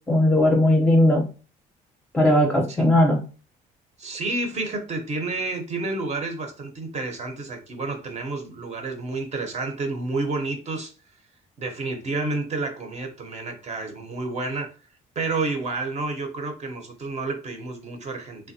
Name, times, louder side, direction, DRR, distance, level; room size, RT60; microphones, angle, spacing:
voice 1, 0.1-1.2 2.1-3.2, left 1 dB, 5° left, -1 dB, 0.6 m, -18 dB
voice 2, 4.0-10.9 11.6-14.7 15.2-18.5, right 3 dB, 40° right, 4 dB, 0.7 m, -30 dB
3.2 x 2.2 x 2.6 m, 0.35 s
cardioid pair, 110°, 17 cm